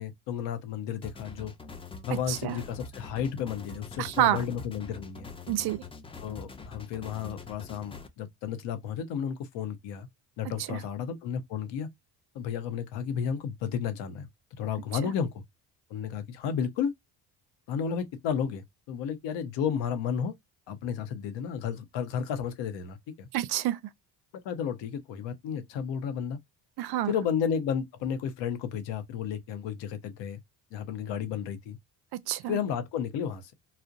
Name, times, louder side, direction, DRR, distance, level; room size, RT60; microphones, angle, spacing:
voice 1, 0.0-1.5 2.0-5.3 6.2-10.1 10.4-11.9 12.3-14.3 14.6-15.4 15.9-16.9 17.7-20.3 20.7-23.3 24.3-26.4 27.1-30.4 30.7-31.8 32.5-33.5, left 7 dB, 70° left, 0.7 m, -32 dB
sound 1, 1.0-8.1, left 4 dB, 15° left, 0.3 m, -44 dB
voice 2, 2.3-2.6 4.0-4.4 5.5-5.8 10.6-10.8 15.0-15.1 23.3-23.8 26.8-27.1 32.3-32.6, right 13 dB, 60° right, 0.5 m, -28 dB
2.6 x 2.1 x 2.4 m
supercardioid pair, 75°, 45 cm